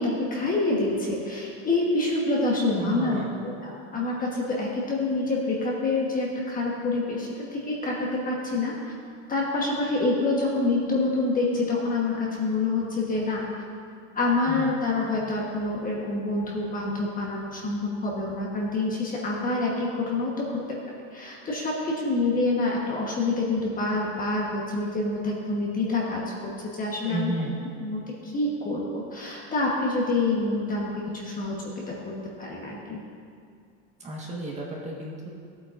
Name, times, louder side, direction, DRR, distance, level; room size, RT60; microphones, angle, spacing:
voice 1, 0.0-3.2 3.6-8.9 9.3-13.4 14.1-20.8 21.1-27.3 27.8-33.0, left 2 dB, 20° left, -3 dB, 1.2 m, -27 dB
voice 2, 2.8-3.3 14.5-14.7 27.1-27.5 34.0-35.3, right 2 dB, 20° right, -3 dB, 1.5 m, -33 dB
14.5 x 8.4 x 2.6 m, 2.3 s
supercardioid pair, 140°, 37 cm